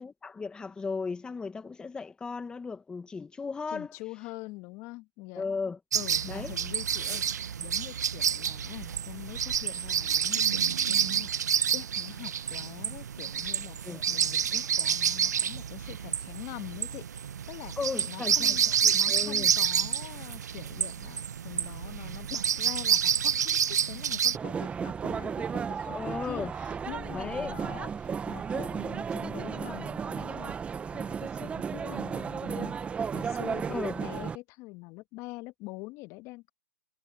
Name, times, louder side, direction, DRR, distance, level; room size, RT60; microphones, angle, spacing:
voice 1, 0.0-3.9 5.3-5.8 6.3-6.5 13.8-14.0 17.8-19.5 25.8-26.5 27.1-27.5 33.7-34.0, left 4 dB, 10° left, 1.7 m, -36 dB
voice 2, 3.7-5.5 5.9-7.2 7.6-17.1 17.5-17.8 18.1-18.6 18.9-30.6 30.9-32.8 33.1-36.5, left 22 dB, 35° left, 1.7 m, -44 dB
sound 1, 5.9-24.4, right 8 dB, 75° right, 1.0 m, -29 dB
sound 2, 24.3-34.4, right 6 dB, 15° right, 1.0 m, -34 dB
hypercardioid pair, 130°, 9 cm